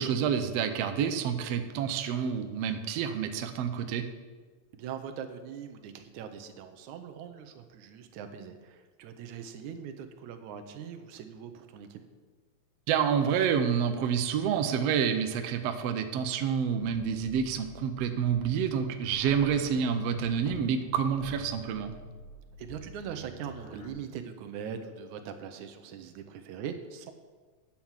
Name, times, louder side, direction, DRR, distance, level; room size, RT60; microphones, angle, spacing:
voice 1, 0.0-4.1 12.9-21.9, right 7 dB, 70° right, 7 dB, 1.7 m, -28 dB
voice 2, 4.7-12.0 22.6-27.1, right 7 dB, 90° right, 7 dB, 2.2 m, -41 dB
sound 1, 16.8-23.9, left 3 dB, 55° left, 1.1 m, -47 dB
9.6 x 5.9 x 7.2 m, 1.4 s
omnidirectional pair, 3.3 m